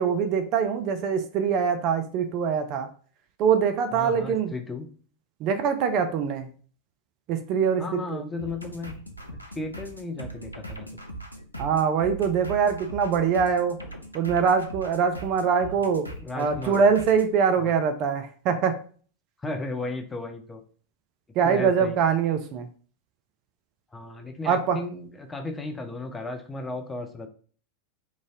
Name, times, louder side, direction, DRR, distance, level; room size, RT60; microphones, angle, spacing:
voice 1, 0.0-2.9 3.4-4.5 5.4-6.5 7.3-8.2 11.6-13.8 14.1-16.1 16.4-18.8 21.4-22.7 24.5-24.8, right 6 dB, 40° right, 8 dB, 0.4 m, -23 dB
voice 2, 3.9-4.9 7.8-8.9 9.6-10.9 15.7-15.8 16.2-16.9 17.6-17.7 19.4-20.6 21.4-22.0 23.9-27.3, left 2 dB, 15° left, 5 dB, 0.6 m, -35 dB
sound 1, 8.4-17.3, right 1 dB, 85° left, 0.5 m, -40 dB
3.1 x 2.6 x 3.7 m, 0.43 s
figure-of-eight pair, 90°, 0 cm